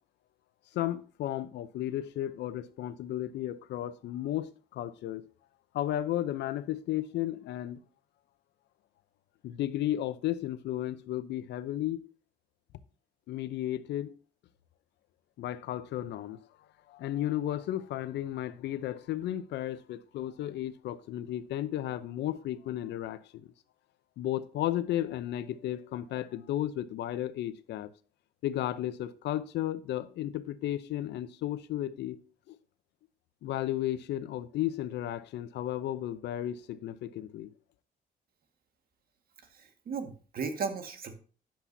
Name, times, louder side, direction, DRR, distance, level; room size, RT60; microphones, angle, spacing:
voice 1, 0.7-5.2 5.7-7.8 9.4-12.1 13.3-14.1 15.4-16.4 16.9-23.5 24.2-27.9 28.4-32.2 32.5-32.6 33.4-37.5, left 13 dB, 75° left, 0.7 m, -34 dB
voice 2, 39.5-41.1, right 5 dB, 55° right, 1.7 m, -36 dB
10.5 x 7.2 x 2.7 m
cardioid pair, 85°, 18 cm